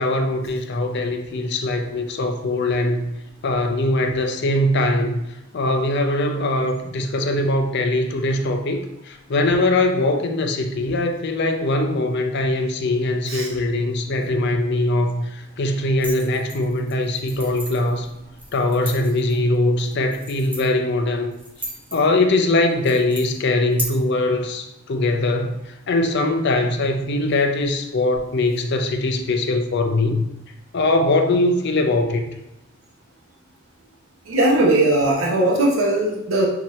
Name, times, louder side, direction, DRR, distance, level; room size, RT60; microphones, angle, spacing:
voice 1, 0.0-3.1 3.4-5.2 5.5-8.8 9.1-18.1 18.5-21.3 21.9-25.5 25.9-30.3 30.7-32.3, left 2 dB, 60° left, 5 dB, 0.5 m, -21 dB
sound 1, 16.0-23.8, equal, 10° right, 1.0 m, -37 dB
voice 2, 34.3-36.5, right 1 dB, 85° right, -2 dB, 0.8 m, -19 dB
5.9 x 2.8 x 3.1 m, 0.90 s
head